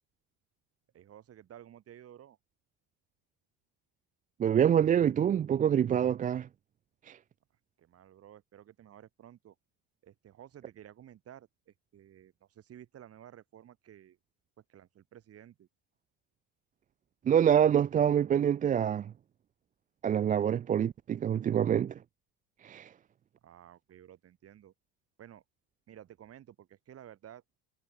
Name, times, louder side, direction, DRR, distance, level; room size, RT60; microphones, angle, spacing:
voice 1, 0.9-2.4 7.8-9.6 10.0-14.2 14.7-15.7 23.4-24.7 25.2-25.4 25.9-27.4, right 11 dB, 35° right, 7.4 m, -53 dB
voice 2, 4.4-6.5 7.1-7.2 17.3-19.1 20.0-22.0 22.6-22.9, right 9 dB, 20° right, 0.4 m, -26 dB
cardioid pair, 165°, 39 cm